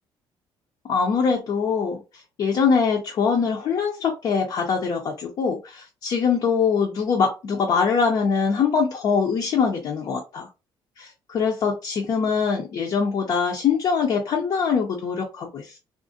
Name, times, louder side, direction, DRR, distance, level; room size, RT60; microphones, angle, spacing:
voice 1, 0.8-10.5 11.0-15.8, left 5 dB, 45° left, 0.5 m, -23 dB
2.4 x 2.1 x 2.5 m
cardioid pair, 135°, 9 cm